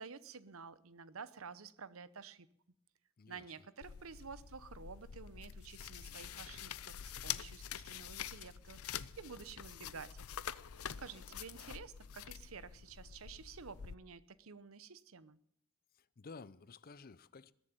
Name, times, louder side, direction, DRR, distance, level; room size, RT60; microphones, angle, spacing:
voice 1, 0.0-2.5 3.3-10.2 10.8-15.4, right 5 dB, 70° right, 0.8 m, -51 dB
sound 1, 3.8-13.9, left 9 dB, 80° left, 0.6 m, -46 dB
voice 2, 15.9-17.5, left 4 dB, 45° left, 0.6 m, -53 dB
20.5 x 7.4 x 9.0 m
head